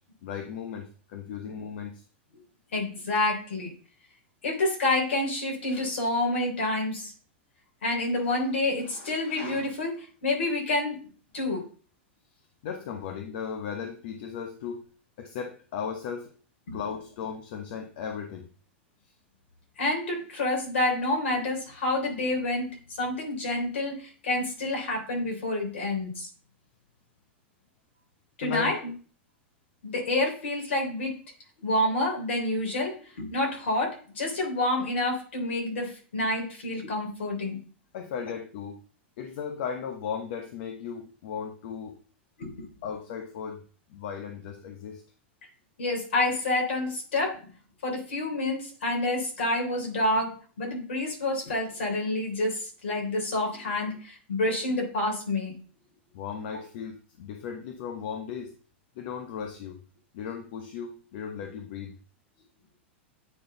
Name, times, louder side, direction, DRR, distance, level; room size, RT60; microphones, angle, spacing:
voice 1, 0.2-2.0 12.6-14.9 15.2-16.3 16.7-18.5 28.4-28.7 37.9-38.8 39.2-42.0 42.8-43.6 43.9-45.0 56.1-58.6 59.0-59.8 60.1-62.0, left 7 dB, 65° left, 4 dB, 0.9 m, -36 dB
voice 2, 2.7-3.7 4.4-7.1 7.8-11.0 11.3-11.6 16.7-16.8 19.8-26.3 28.4-28.9 29.8-31.2 31.6-37.6 42.4-42.7 45.8-47.4 47.8-55.5, left 2 dB, 80° left, 0 dB, 3.4 m, -28 dB
8.8 x 3.9 x 3.9 m, 0.40 s
hypercardioid pair, 100°, 6 cm